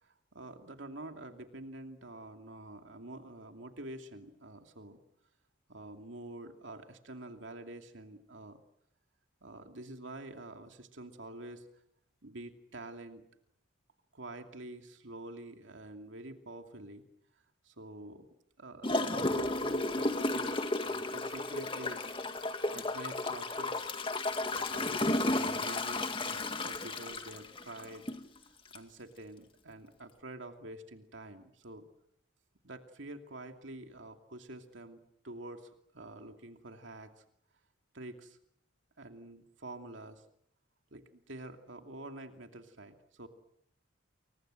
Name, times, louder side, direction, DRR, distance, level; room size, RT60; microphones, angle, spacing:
voice 1, 0.0-5.0 5.7-8.6 9.4-11.7 12.2-13.2 14.1-17.1 17.6-18.3 18.6-20.5 20.8-22.0 22.7-23.9 24.5-28.1 28.5-31.9 32.6-35.0 35.2-37.2 37.9-38.4 39.0-40.2 40.9-43.3, right 2 dB, 75° right, 5 dB, 2.6 m, -47 dB
Gurgling / Toilet flush, 18.8-28.2 28.7-28.8, left 2 dB, 25° left, 2.1 m, -33 dB
30.0 x 23.5 x 7.8 m, 0.72 s
head